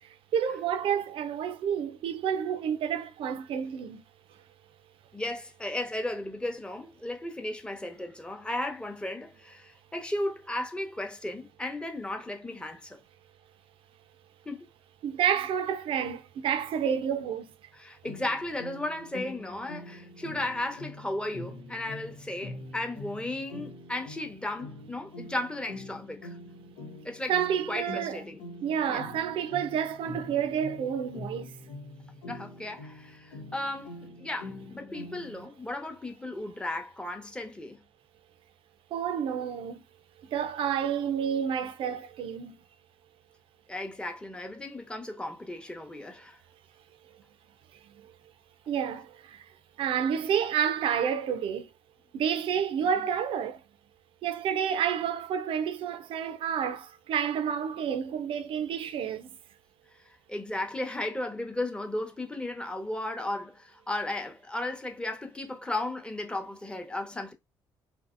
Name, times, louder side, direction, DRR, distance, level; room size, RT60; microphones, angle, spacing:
voice 1, 0.0-4.0 15.0-17.5 27.3-28.2 28.6-31.5 38.9-39.8 40.3-42.6 47.8-48.1 48.7-49.4 49.8-51.7 52.1-53.6 54.2-59.3, right 8 dB, 60° right, 0.4 m, -29 dB
voice 2, 5.1-13.0 14.5-14.7 17.7-26.4 27.0-27.3 27.7-28.4 28.9-29.0 32.3-37.8 43.7-46.4 53.0-53.1 60.3-67.3, left 1 dB, 10° left, 0.7 m, -35 dB
sound 1, 18.0-35.5, left 2 dB, 85° left, 0.6 m, -44 dB
2.8 x 2.6 x 2.4 m
hypercardioid pair, 55°, 10 cm